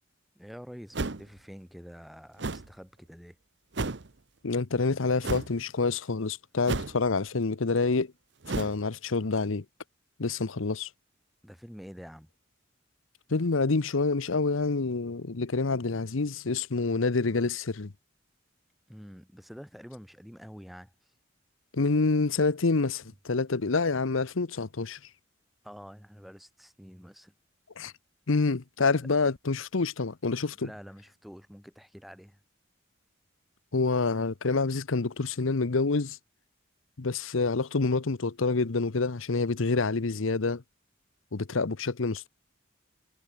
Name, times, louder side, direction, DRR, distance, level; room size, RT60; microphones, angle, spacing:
voice 1, 0.4-3.4 11.4-12.3 18.9-21.1 23.0-23.2 25.6-27.3 30.5-32.4, equal, ahead, 7.9 m, -47 dB
sound 1, 0.9-1.4 2.4-2.7 3.7-4.1 5.2-5.5 6.7-7.1 8.4-8.8, right 3 dB, 60° right, 1.0 m, -32 dB
voice 2, 4.4-8.1 8.5-9.6 10.2-10.9 13.3-17.9 21.7-25.0 27.8-27.9 28.3-30.7 33.7-36.2 37.0-40.6 41.3-42.3, left 3 dB, 90° left, 0.9 m, -27 dB
head